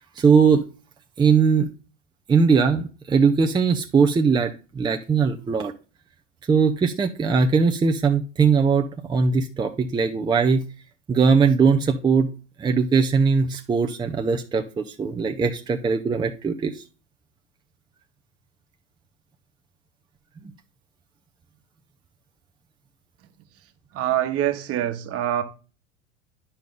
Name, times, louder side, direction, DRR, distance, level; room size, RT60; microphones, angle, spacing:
voice 1, 0.2-0.6 1.2-1.7 2.3-5.7 6.5-10.7 11.1-12.3 12.6-16.8, right 5 dB, 10° right, 0.6 m, -20 dB
voice 2, 23.9-25.4, right 11 dB, 40° right, 1.3 m, -24 dB
10.0 x 5.5 x 3.8 m
figure-of-eight pair, 80°, 37 cm